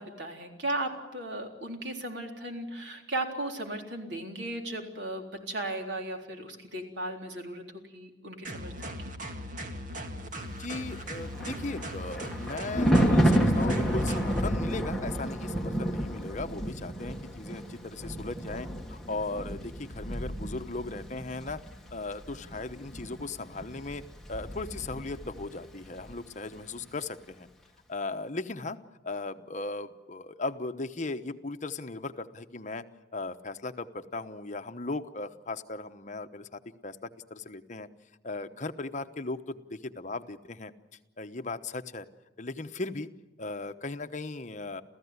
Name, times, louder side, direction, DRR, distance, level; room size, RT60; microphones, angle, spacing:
voice 1, 0.0-8.9, right 1 dB, 90° right, 3 dB, 3.8 m, -36 dB
sound 1, 8.4-14.4, equal, 45° right, 2.2 m, -39 dB
voice 2, 10.4-21.6 21.9-24.0 24.3-27.5 27.9-28.8 29.0-32.8 33.1-37.9 38.2-40.7 41.2-42.1 42.4-43.1 43.4-44.8, left 3 dB, 45° left, 9 dB, 1.0 m, -37 dB
Thunder, 11.0-25.6 25.8-26.1, right 1 dB, ahead, 2.0 m, -30 dB
29.0 x 15.0 x 9.6 m, 1.1 s
head